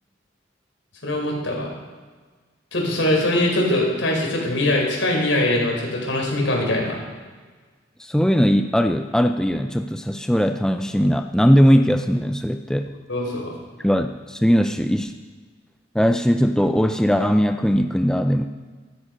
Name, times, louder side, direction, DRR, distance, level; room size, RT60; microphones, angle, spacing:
voice 1, 1.0-1.7 2.7-7.0 13.1-13.5, left 1 dB, 80° left, -1 dB, 4.5 m, -22 dB
voice 2, 8.0-12.9 13.8-15.2 15.9-18.4, equal, 5° left, 6 dB, 0.4 m, -19 dB
14.0 x 13.0 x 5.1 m, 1.4 s
head